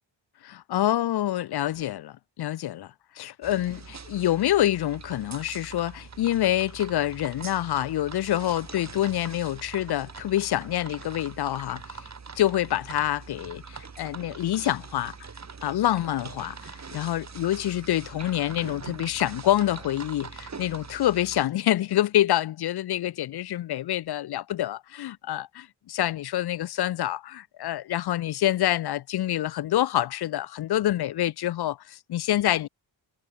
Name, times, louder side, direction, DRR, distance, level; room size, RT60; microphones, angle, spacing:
voice 1, 0.4-12.1 12.4-15.1 15.6-32.7, left 13 dB, 55° left, 0.5 m, -27 dB
sound 1, 3.4-21.4, right 5 dB, 35° right, 3.6 m, -43 dB
wide cardioid pair, 150°, 47 cm